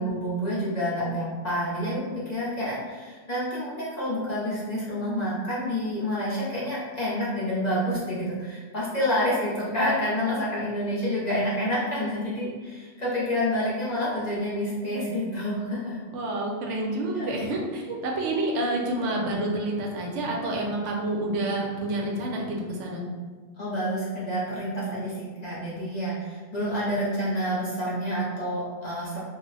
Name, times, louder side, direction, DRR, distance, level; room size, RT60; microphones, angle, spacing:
voice 1, 0.0-16.0 17.1-17.3 23.6-29.2, equal, 45° left, -8 dB, 0.6 m, -28 dB
voice 2, 9.5-9.9 16.1-23.0, right 1 dB, 75° right, -1 dB, 0.9 m, -29 dB
2.3 x 2.1 x 3.8 m, 1.4 s
omnidirectional pair, 1.2 m